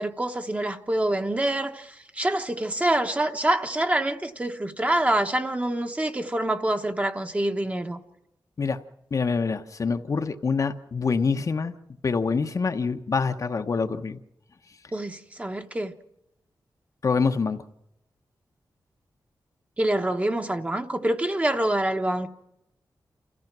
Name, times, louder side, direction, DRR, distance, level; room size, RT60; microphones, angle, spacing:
voice 1, 0.0-8.0 14.9-15.9 19.8-22.3, right 1 dB, 20° right, 1.1 m, -26 dB
voice 2, 9.1-11.8 12.0-14.2 17.0-17.6, left 5 dB, 45° left, 0.9 m, -25 dB
29.0 x 15.0 x 6.0 m
wide cardioid pair, 145°, 8 cm